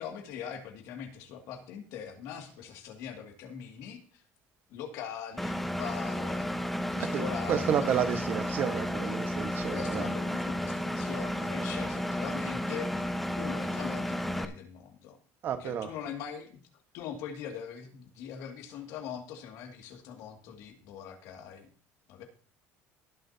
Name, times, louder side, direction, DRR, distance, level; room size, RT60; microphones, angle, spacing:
voice 1, 0.0-4.2 4.7-6.5 6.9-8.2 9.7-13.0 13.4-15.2 15.6-16.6 16.9-21.7 22.1-22.2, left 8 dB, 70° left, 3 dB, 2.4 m, -42 dB
Engine, 5.4-14.5, left 1 dB, ahead, 0.7 m, -32 dB
voice 2, 7.1-10.1 11.4-11.5 15.4-15.9, right 8 dB, 40° right, 8 dB, 1.4 m, -31 dB
19.0 x 7.5 x 2.9 m, 0.42 s
cardioid pair, 160°, 5 cm